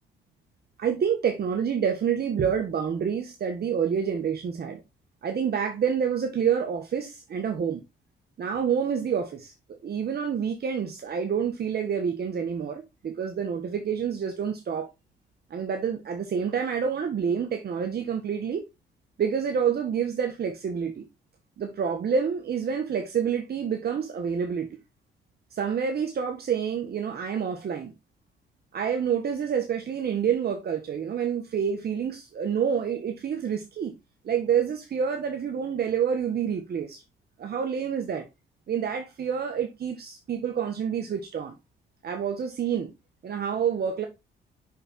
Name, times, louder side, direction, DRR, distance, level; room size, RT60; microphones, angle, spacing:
voice 1, 0.8-4.8 5.2-7.8 8.4-9.5 9.8-14.9 15.5-18.6 19.2-21.0 21.6-24.7 25.5-27.9 28.7-33.9 34.2-37.0 37.4-38.3 38.7-41.5 42.0-42.9 43.2-44.1, right 7 dB, 50° right, 1.5 m, -28 dB
6.7 x 6.0 x 4.2 m
cardioid pair, 90°, 20 cm